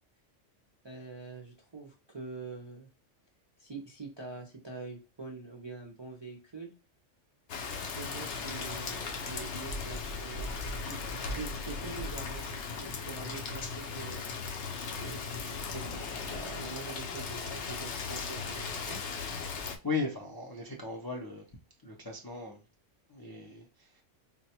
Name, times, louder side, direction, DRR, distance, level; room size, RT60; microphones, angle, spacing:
voice 1, 0.8-2.9 3.6-6.7 7.6-14.2 15.0-19.0, right 3 dB, 40° right, 0.4 m, -45 dB
Rain, 7.5-19.8, left 4 dB, 70° left, 0.9 m, -37 dB
voice 2, 19.8-21.4 21.8-22.6 23.1-24.0, left 4 dB, 35° left, 0.3 m, -37 dB
3.9 x 2.2 x 2.8 m
omnidirectional pair, 1.3 m